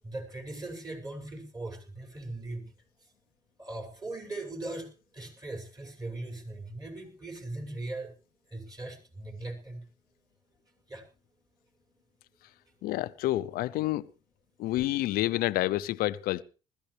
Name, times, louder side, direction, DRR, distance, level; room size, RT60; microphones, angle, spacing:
voice 1, 0.0-2.7 3.0-3.1 3.6-8.1 8.5-9.8 10.9-11.1, right 2 dB, 25° right, 6.7 m, -39 dB
voice 2, 12.8-14.1 14.6-16.4, left 16 dB, 75° left, 0.7 m, -28 dB
20.5 x 14.5 x 3.4 m
supercardioid pair, 75°, 16 cm